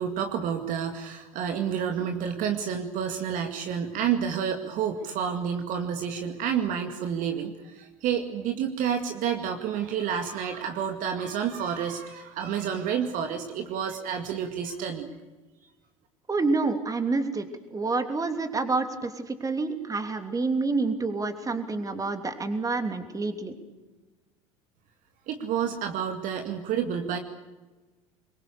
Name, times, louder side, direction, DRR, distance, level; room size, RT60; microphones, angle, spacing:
voice 1, 0.0-15.1 25.3-27.2, right 8 dB, 50° right, 5 dB, 2.2 m, -29 dB
voice 2, 16.3-17.5 17.7-19.1 19.4-23.5, right 3 dB, 20° right, 7 dB, 3.1 m, -28 dB
24.5 x 22.5 x 7.0 m, 1.2 s
figure-of-eight pair, 70°, 18 cm